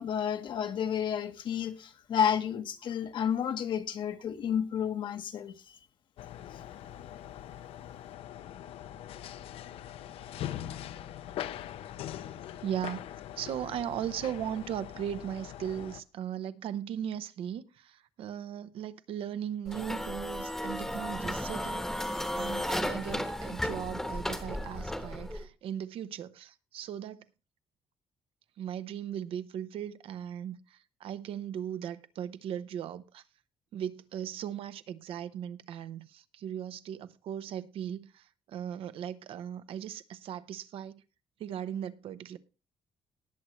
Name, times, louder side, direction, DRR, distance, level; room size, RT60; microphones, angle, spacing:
voice 1, 0.0-5.8, left 8 dB, 55° left, 1.1 m, -31 dB
sound 1, 6.2-16.0, left 11 dB, 75° left, 0.6 m, -42 dB
voice 2, 12.6-13.0 13.4-27.3 28.6-33.2 33.7-41.0 41.4-42.4, right 9 dB, 70° right, 0.8 m, -38 dB
sound 2, 19.7-25.5, left 1 dB, 5° left, 1.1 m, -34 dB
19.0 x 7.8 x 3.1 m
cardioid pair, 155°, 10 cm